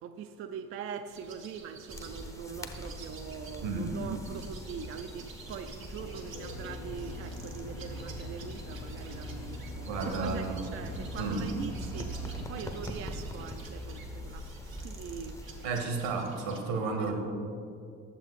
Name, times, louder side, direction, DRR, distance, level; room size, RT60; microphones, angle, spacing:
voice 1, 0.0-15.4 17.0-17.2, right 7 dB, 35° right, 7 dB, 0.4 m, -42 dB
sound 1, 1.1-16.6, right 4 dB, 90° right, 0.6 m, -51 dB
sound 2, 1.9-15.7, equal, 10° left, 0.6 m, -43 dB
voice 2, 3.6-4.0 9.8-10.7 11.2-11.5 15.6-17.2, right 4 dB, 65° right, 4 dB, 1.1 m, -32 dB
Aircraft, 6.0-12.7, left 2 dB, 70° left, 0.8 m, -42 dB
9.7 x 7.2 x 3.1 m, 2.5 s
figure-of-eight pair, 45°, 39 cm